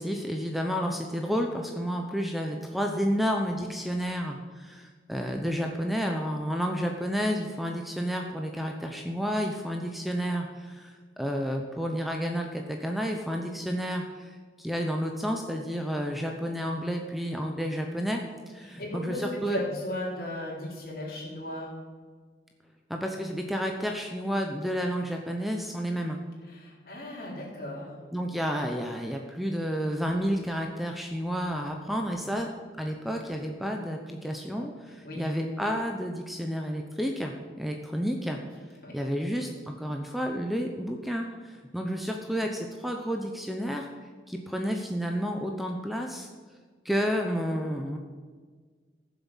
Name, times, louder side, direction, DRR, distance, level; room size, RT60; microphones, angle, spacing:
voice 1, 0.0-19.6 22.9-26.2 28.1-32.5 32.8-38.4 38.9-43.9 44.3-46.3 46.8-48.0, equal, ahead, 2 dB, 0.8 m, -31 dB
voice 2, 18.8-21.7 26.5-28.0 35.0-35.3 38.8-38.9, left 1 dB, 55° left, -3 dB, 4.0 m, -36 dB
15.0 x 7.2 x 7.4 m, 1.5 s
head